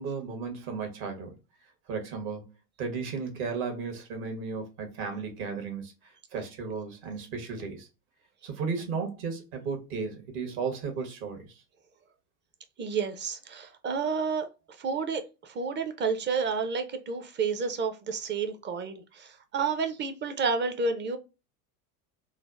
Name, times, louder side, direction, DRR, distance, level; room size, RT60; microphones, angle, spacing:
voice 1, 0.0-1.4 1.9-2.5 2.8-7.9 8.4-11.4, right 5 dB, 65° right, 1.3 m, -34 dB
voice 2, 12.8-14.5 14.8-21.2, right 5 dB, 25° right, 0.5 m, -30 dB
3.3 x 2.0 x 2.4 m
hypercardioid pair, 85°, 45 cm